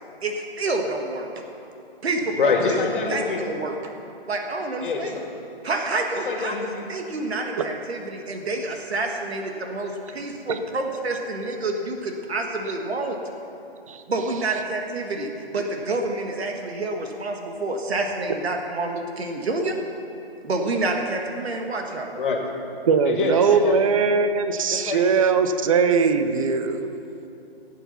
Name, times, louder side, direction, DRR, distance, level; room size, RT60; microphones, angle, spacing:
voice 1, 0.2-1.3 2.0-2.5 3.1-3.8 4.3-5.2 5.6-6.6 6.9-13.2 14.1-19.8 20.4-22.1, right 2 dB, 80° right, 3 dB, 1.7 m, -28 dB
voice 2, 2.4-3.4 4.8-5.2 6.1-6.9 22.1-22.5 23.0-24.1 24.7-25.1, left 4 dB, 55° left, 2 dB, 2.1 m, -25 dB
voice 3, 22.9-27.0, right 5 dB, 35° right, 9 dB, 0.6 m, -20 dB
16.0 x 8.4 x 5.7 m, 2.7 s
hypercardioid pair, 160°, 31 cm